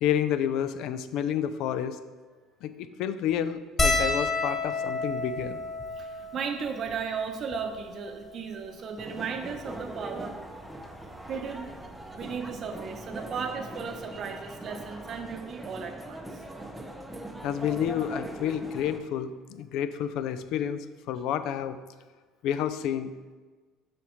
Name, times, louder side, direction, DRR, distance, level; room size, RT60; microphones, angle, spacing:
voice 1, 0.0-2.0 2.6-5.6 17.4-21.8 22.4-23.1, left 9 dB, 70° left, 12 dB, 0.4 m, -30 dB
sound 1, 3.8-8.4 9.1-9.2 9.4-9.6 10.9-11.1 12.6-12.7 12.9-13.1, left 2 dB, 20° left, 0.9 m, -31 dB
voice 2, 6.0-10.4 11.3-11.7 12.1-16.4 17.3-17.4, right 6 dB, 45° right, 6 dB, 0.7 m, -35 dB
sound 2, 9.0-19.0, right 1 dB, 5° right, 0.7 m, -41 dB
7.0 x 5.0 x 3.1 m, 1.3 s
supercardioid pair, 90°, 0 cm